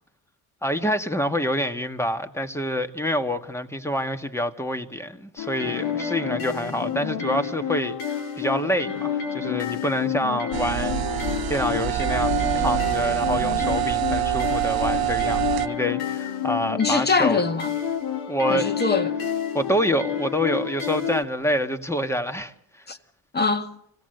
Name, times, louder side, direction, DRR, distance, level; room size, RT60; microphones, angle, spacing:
voice 1, 0.6-17.4 18.3-18.7 19.5-22.8, equal, 5° left, 1.6 m, -27 dB
sound 1, 5.4-21.2, left 8 dB, 75° left, 2.5 m, -29 dB
sound 2, 10.5-15.7, right 15 dB, 70° right, 0.8 m, -25 dB
voice 2, 16.8-17.7 18.5-19.2 22.9-23.0 23.3-23.7, left 4 dB, 25° left, 1.7 m, -23 dB
26.0 x 17.0 x 7.9 m
cardioid pair, 90°, 38 cm